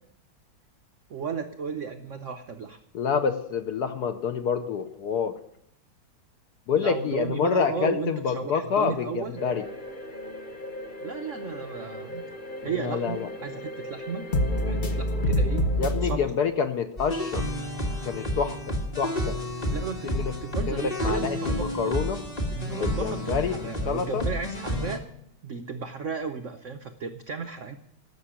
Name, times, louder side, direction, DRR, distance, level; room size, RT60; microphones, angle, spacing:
voice 1, 1.1-2.8 6.7-9.4 11.0-12.3 12.6-14.3 14.7-15.7 15.9-16.3 19.7-21.5 21.9-22.0 22.5-25.0 25.4-27.7, right 6 dB, 90° right, 7 dB, 0.6 m, -34 dB
voice 2, 2.9-5.4 6.7-9.6 12.8-13.3 15.8-17.5 18.0-19.4 20.0-20.4 20.7-22.2 22.7-23.6 23.9-24.2, left 6 dB, 65° left, 8 dB, 1.0 m, -27 dB
sound 1, 9.4-16.2, left 1 dB, 40° left, 0.6 m, -30 dB
sound 2, 17.0-25.0, equal, 20° left, 1.5 m, -30 dB
13.5 x 6.4 x 10.0 m, 0.76 s
omnidirectional pair, 2.3 m